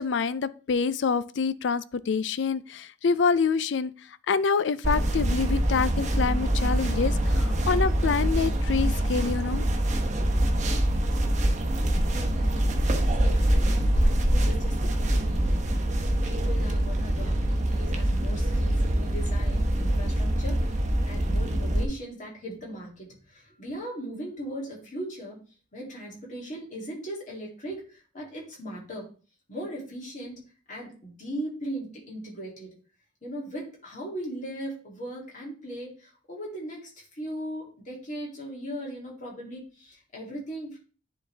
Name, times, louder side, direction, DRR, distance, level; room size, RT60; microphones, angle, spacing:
voice 1, 0.0-3.9 4.3-9.7, left 5 dB, 80° left, 0.4 m, -26 dB
sound 1, 4.8-21.8, right 1 dB, 40° right, 0.9 m, -24 dB
voice 2, 12.1-20.8 21.1-25.4 25.7-29.0 29.5-30.4 30.7-32.7 33.2-40.8, right 1 dB, 40° left, 2.7 m, -39 dB
10.0 x 4.0 x 3.4 m
head